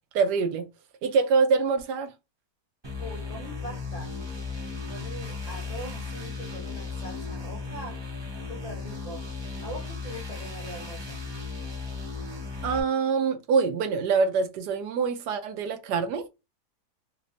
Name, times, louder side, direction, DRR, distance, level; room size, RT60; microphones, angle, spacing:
voice 1, 0.1-0.7 1.0-2.1 12.6-16.2, right 5 dB, 85° right, 1.3 m, -25 dB
sound 1, 2.8-12.8, left 4 dB, 20° right, 0.7 m, -36 dB
voice 2, 3.0-4.2 4.9-8.0 8.5-9.2 9.6-11.2, equal, 30° left, 0.9 m, -41 dB
3.3 x 3.1 x 2.5 m
omnidirectional pair, 1.7 m